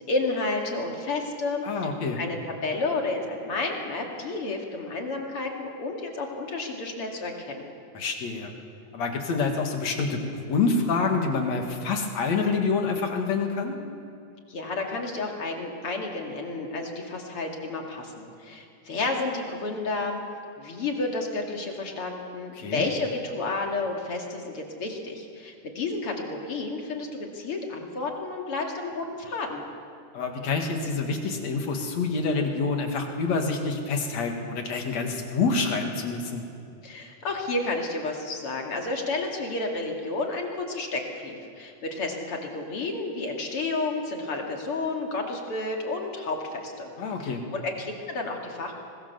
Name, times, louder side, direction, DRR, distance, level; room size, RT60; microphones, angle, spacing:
voice 1, 0.1-7.7 14.5-20.2 20.6-29.6 36.8-46.9 47.2-48.8, left 3 dB, 50° left, 1 dB, 3.1 m, -31 dB
voice 2, 1.6-2.2 7.9-8.5 8.9-13.8 22.6-22.9 30.1-36.4 47.0-47.4, left 4 dB, 65° left, 3 dB, 3.2 m, -27 dB
24.0 x 21.5 x 7.1 m, 2.5 s
omnidirectional pair, 3.4 m